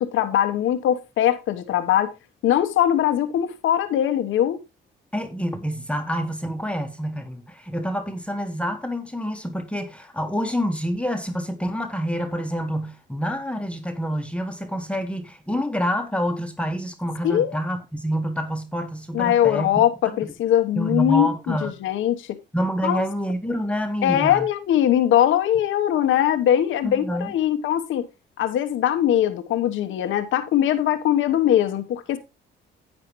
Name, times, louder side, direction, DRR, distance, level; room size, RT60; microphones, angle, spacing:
voice 1, 0.0-2.1 2.4-4.6 17.2-17.6 19.1-22.4 22.8-23.0 24.0-28.1 28.4-32.2, left 11 dB, 80° left, 1.2 m, -21 dB
voice 2, 5.1-19.7 20.7-21.7 22.5-24.4 26.8-27.3, equal, 5° left, 1.4 m, -27 dB
10.5 x 8.7 x 3.1 m
cardioid pair, 90°, 20 cm